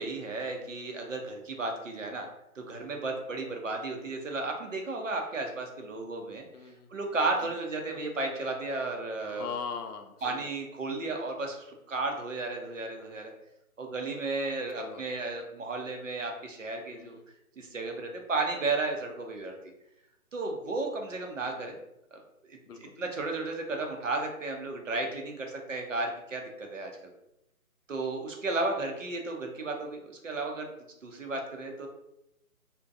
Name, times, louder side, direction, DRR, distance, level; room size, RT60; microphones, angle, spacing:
voice 1, 0.0-2.3 2.6-6.4 6.9-9.5 10.2-13.3 13.8-17.2 17.6-19.6 20.3-21.8 22.1-22.2 22.5-26.9 27.9-30.7 31.0-31.9, right 3 dB, 60° right, 3 dB, 0.6 m, -33 dB
voice 2, 6.5-6.9 7.4-7.5 9.2-10.5 14.8-15.0 16.8-17.2 21.4-21.8 22.7-22.9, left 6 dB, 90° left, 5 dB, 0.6 m, -41 dB
2.6 x 2.1 x 2.4 m, 0.85 s
hypercardioid pair, 175°, 45 cm